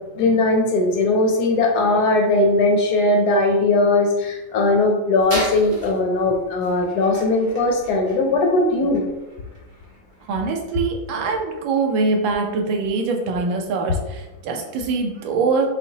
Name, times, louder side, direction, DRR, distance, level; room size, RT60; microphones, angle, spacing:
voice 1, 0.1-9.0, left 2 dB, 75° left, 2 dB, 0.9 m, -19 dB
sound 1, 5.2-11.9, equal, 45° right, 1.3 m, -37 dB
voice 2, 10.3-15.7, right 4 dB, 85° right, 2 dB, 1.4 m, -23 dB
5.7 x 2.1 x 2.7 m, 1.1 s
omnidirectional pair, 2.1 m